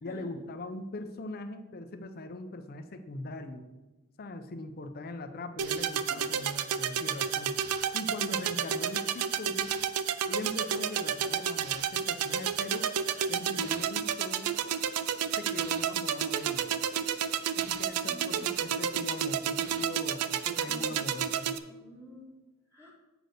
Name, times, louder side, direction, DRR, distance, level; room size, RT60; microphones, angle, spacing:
voice 1, 0.0-3.6 4.2-7.6 7.9-9.7 10.3-12.9 13.3-14.5 15.4-16.7 17.6-21.6, left 2 dB, 45° left, 7 dB, 0.6 m, -41 dB
sound 1, 5.6-21.6, right 8 dB, 85° right, 0.5 m, -31 dB
voice 2, 18.0-18.6 20.6-20.9 21.6-22.3 22.7-22.9, right 1 dB, 10° right, -4 dB, 1.5 m, -50 dB
7.9 x 4.1 x 6.5 m, 1.1 s
head